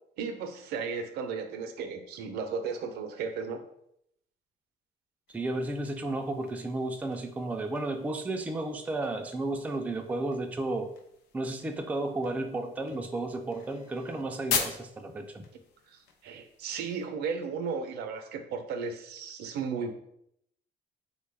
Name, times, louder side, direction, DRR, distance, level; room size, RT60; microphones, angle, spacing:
voice 1, 0.2-3.6 15.9-19.9, right 5 dB, 75° right, 7 dB, 0.5 m, -35 dB
sound 1, 5.3-17.1, left 6 dB, 80° left, 0.6 m, -41 dB
voice 2, 5.3-10.9 11.3-15.5, right 2 dB, 10° right, 5 dB, 0.3 m, -33 dB
3.5 x 2.2 x 3.3 m, 0.73 s
cardioid pair, 110°, 17 cm